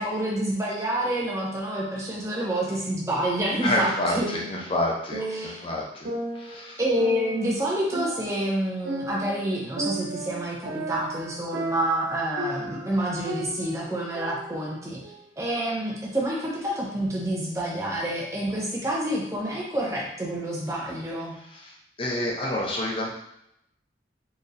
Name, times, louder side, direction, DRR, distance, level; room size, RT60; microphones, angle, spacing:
voice 1, 0.0-4.2 5.1-5.6 6.8-15.0 15.4-21.4, right 1 dB, 15° right, -4 dB, 0.7 m, -28 dB
sound 1, 3.5-5.6 6.0-8.5 8.8-13.0 13.3-15.3, right 1 dB, 75° right, 0.6 m, -35 dB
voice 2, 3.6-6.1 6.3-6.8 21.5-23.1, left 1 dB, 30° left, -2 dB, 0.6 m, -28 dB
4.0 x 2.9 x 2.6 m, 0.79 s
head